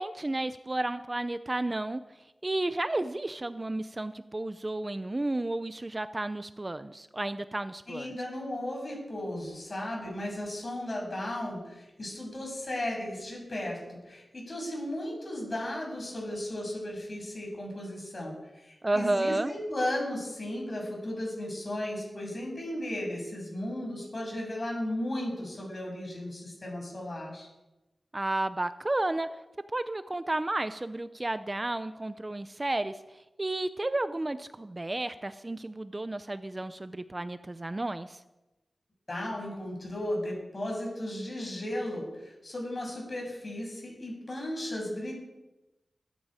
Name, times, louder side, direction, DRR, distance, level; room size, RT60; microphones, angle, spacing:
voice 1, 0.0-2.0 2.4-8.2 18.8-19.5 28.1-29.3 29.7-33.0 33.4-38.2, right 2 dB, 30° right, 12 dB, 0.6 m, -32 dB
voice 2, 7.9-27.5 39.1-45.1, left 1 dB, 45° left, 0 dB, 7.2 m, -35 dB
21.0 x 12.5 x 5.1 m, 1.0 s
wide cardioid pair, 100°, 0 cm